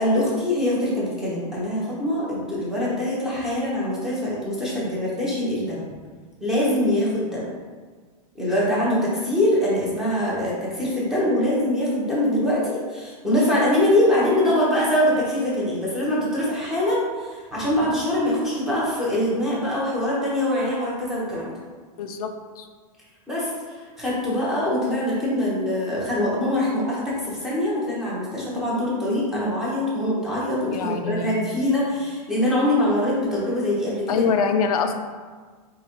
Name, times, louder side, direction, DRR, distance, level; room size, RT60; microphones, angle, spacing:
voice 1, 0.0-5.8 6.4-7.5 8.3-21.5 23.3-34.3, left 1 dB, ahead, -8 dB, 0.7 m, -23 dB
voice 2, 22.0-22.3 22.6-22.7 30.6-31.4 34.1-34.9, left 5 dB, 75° left, 6 dB, 0.4 m, -24 dB
4.3 x 3.7 x 2.8 m, 1.5 s
supercardioid pair, 175°, 19 cm